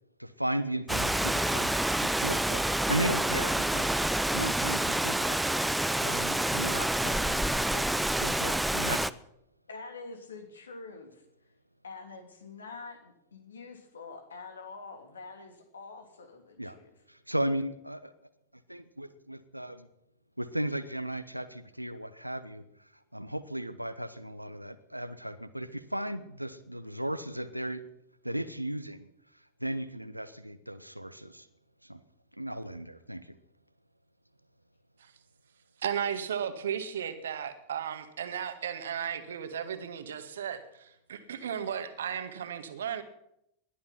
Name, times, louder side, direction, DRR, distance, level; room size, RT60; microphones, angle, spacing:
voice 1, 0.2-1.7 2.0-3.9 4.3-5.4 6.0-7.9 8.2-9.0 16.6-16.8 17.1-18.1 18.7-19.9 20.4-22.6 23.1-27.8 28.2-29.1 29.6-31.5 31.8-32.0 32.4-33.3, right 1 dB, 90° right, 12 dB, 1.0 m, -36 dB
Rain, 0.9-9.1, right 1 dB, 5° right, 0.6 m, -28 dB
voice 2, 9.7-11.2 11.8-16.9, left 4 dB, 70° left, 6 dB, 3.0 m, -46 dB
voice 3, 35.8-43.0, right 8 dB, 65° right, 9 dB, 1.8 m, -35 dB
20.0 x 12.0 x 6.0 m, 0.80 s
figure-of-eight pair, 90°, 0 cm